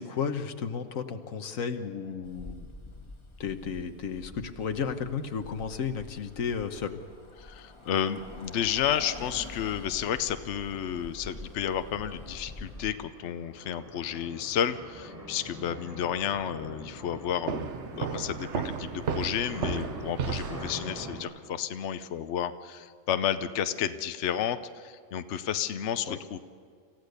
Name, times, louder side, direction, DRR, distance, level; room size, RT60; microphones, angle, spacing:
voice 1, 0.0-2.7 3.4-7.0 26.1-26.2, left 6 dB, 90° left, 8 dB, 1.5 m, -33 dB
Bus, 2.2-12.9, left 2 dB, 20° left, 1.5 m, -46 dB
voice 2, 7.4-26.4, left 9 dB, 65° left, 10 dB, 1.0 m, -31 dB
sound 1, 9.5-21.2, equal, 15° right, 5.8 m, -45 dB
sound 2, 17.5-21.2, right 6 dB, 60° right, 1.2 m, -33 dB
26.5 x 15.0 x 6.7 m, 2.1 s
omnidirectional pair, 1.4 m